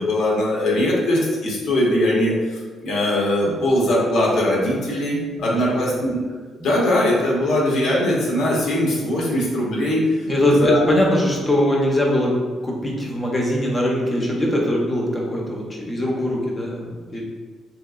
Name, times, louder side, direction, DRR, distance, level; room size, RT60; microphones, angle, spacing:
voice 1, 0.0-2.3 2.8-6.2 6.6-10.0 10.4-10.8, left 1 dB, 75° left, -4 dB, 0.9 m, -20 dB
voice 2, 5.4-6.0 10.3-12.4 12.6-17.2, left 1 dB, 25° left, -2 dB, 0.8 m, -21 dB
3.2 x 2.9 x 2.4 m, 1.4 s
cardioid pair, 90°, 0 cm